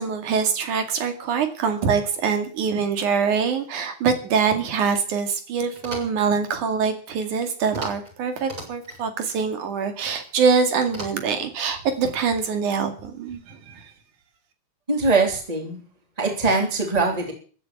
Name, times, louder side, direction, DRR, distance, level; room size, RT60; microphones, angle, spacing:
voice 1, 0.0-13.9, right 6 dB, 75° right, 7 dB, 3.7 m, -24 dB
sound 1, 5.7-6.3 7.7-8.1 8.4-9.0 10.8-11.5, right 1 dB, 35° right, 7.9 m, -37 dB
voice 2, 14.9-15.8 16.2-17.3, right 3 dB, 10° right, 2 dB, 3.3 m, -22 dB
15.0 x 10.5 x 8.5 m, 0.43 s
omnidirectional pair, 3.5 m